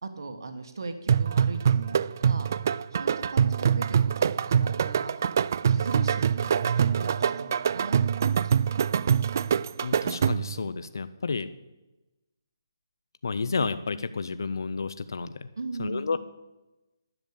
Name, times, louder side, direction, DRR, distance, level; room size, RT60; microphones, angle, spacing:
voice 1, 0.0-2.5 2.9-5.2 5.5-8.8 15.6-16.2, right 3 dB, 70° right, 8 dB, 1.4 m, -39 dB
sound 1, 1.1-10.6, right 7 dB, 45° right, 0.3 m, -24 dB
voice 2, 9.8-11.5 13.2-15.5 15.8-16.2, left 4 dB, 70° left, 13 dB, 0.6 m, -31 dB
10.5 x 7.1 x 8.5 m, 1.0 s
hypercardioid pair, 160°, 2 cm